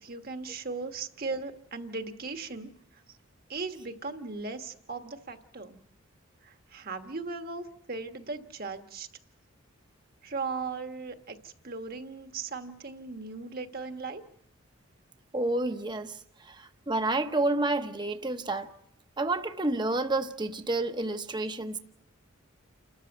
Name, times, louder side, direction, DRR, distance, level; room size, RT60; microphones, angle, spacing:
voice 1, 0.0-3.0 3.5-5.8 6.4-9.1 10.2-14.2, right 4 dB, 45° right, 7 dB, 1.4 m, -38 dB
voice 2, 15.3-16.2 16.4-18.7 19.2-21.8, right 2 dB, 20° right, 8 dB, 0.9 m, -29 dB
29.5 x 13.5 x 8.0 m, 0.78 s
head